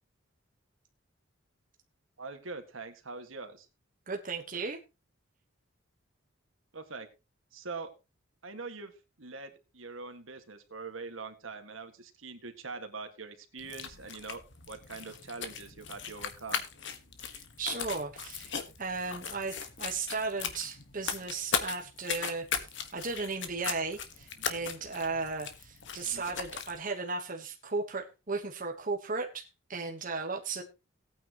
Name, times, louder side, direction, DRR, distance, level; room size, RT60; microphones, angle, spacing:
voice 1, 2.2-3.7 6.7-7.1 7.5-7.9 8.4-8.9 9.2-14.4 14.7-16.6 26.0-26.2, right 4 dB, 75° right, 7 dB, 1.9 m, -43 dB
voice 2, 4.1-4.8 17.3-18.5 18.8-30.6, right 4 dB, 40° right, 2 dB, 1.3 m, -36 dB
sound 1, 13.6-26.8, left 7 dB, 60° left, 1.5 m, -38 dB
17.5 x 9.2 x 3.0 m, 0.28 s
head